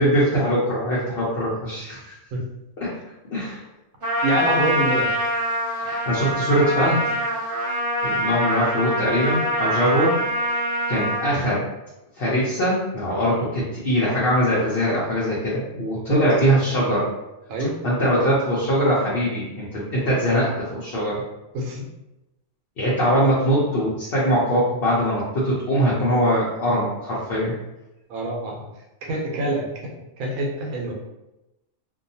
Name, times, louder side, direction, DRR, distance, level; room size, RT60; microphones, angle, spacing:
voice 1, 0.0-2.1 2.8-2.9 3.3-3.6 5.8-7.0 8.0-10.2 10.9-11.7 12.1-17.1 17.8-21.2 22.8-27.5, equal, 55° left, -7 dB, 0.8 m, -22 dB
Trumpet, 4.0-11.3, equal, 40° right, 1.1 m, -24 dB
voice 2, 4.2-5.1 16.1-16.8 17.5-17.8 21.5-21.9 28.1-28.7 29.0-29.6 30.2-30.9, right 1 dB, 85° right, 0 dB, 1.1 m, -26 dB
2.7 x 2.3 x 2.6 m, 0.95 s
omnidirectional pair, 1.4 m